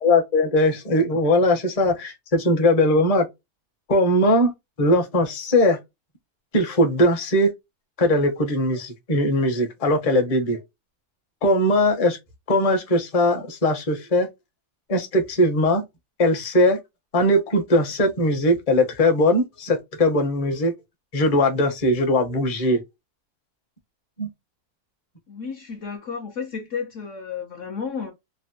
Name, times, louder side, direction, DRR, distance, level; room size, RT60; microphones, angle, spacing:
voice 1, 0.0-3.3 3.9-4.5 4.8-5.8 6.5-7.5 8.0-10.6 11.4-12.2 12.5-14.3 14.9-15.8 16.2-16.8 17.1-20.7 21.1-22.8 24.2-24.3, left 1 dB, 30° left, 0.7 m, -20 dB
voice 2, 25.3-28.1, left 6 dB, 65° left, 0.9 m, -32 dB
3.3 x 2.1 x 2.6 m
omnidirectional pair, 1.6 m